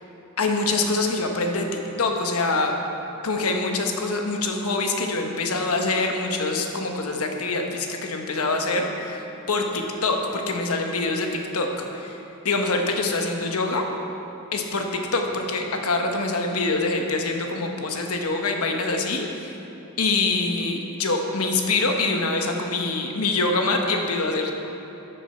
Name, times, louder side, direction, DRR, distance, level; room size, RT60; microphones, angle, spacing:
voice 1, 0.4-1.7 2.0-2.7 3.2-12.2 12.4-13.8 14.5-14.8 15.1-19.5 20.0-24.5, left 3 dB, 80° left, 3 dB, 1.1 m, -25 dB
13.5 x 6.9 x 4.4 m, 3.0 s
head